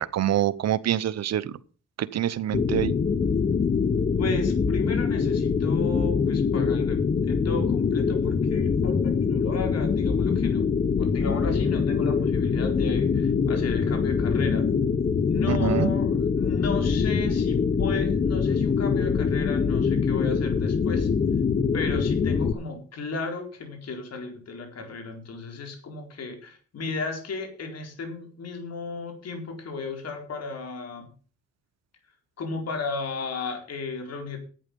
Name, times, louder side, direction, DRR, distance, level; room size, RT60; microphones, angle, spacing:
voice 1, 0.0-1.6 2.0-2.9 15.5-15.9, right 11 dB, 60° right, 0.9 m, -26 dB
sound 1, 2.5-22.5, left 5 dB, 30° left, 0.8 m, -24 dB
voice 2, 4.2-7.0 7.2-10.7 11.0-14.7 15.3-16.1 16.4-21.1 21.7-31.1 32.4-34.4, left 3 dB, 55° left, 4.3 m, -34 dB
11.5 x 9.1 x 5.3 m
cardioid pair, 90°, 30 cm